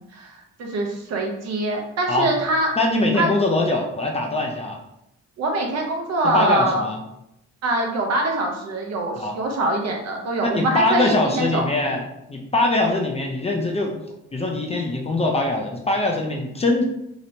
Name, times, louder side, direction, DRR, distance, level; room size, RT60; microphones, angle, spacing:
voice 1, 0.0-2.7 3.1-3.3 5.4-6.8 7.6-11.6, right 2 dB, 60° right, 1 dB, 0.7 m, -24 dB
voice 2, 2.8-4.8 6.2-7.0 9.2-9.4 10.5-12.0 12.3-13.9 14.3-16.8, left 2 dB, 20° left, 0 dB, 0.4 m, -22 dB
2.9 x 2.0 x 2.7 m, 0.82 s
cardioid pair, 90°, 30 cm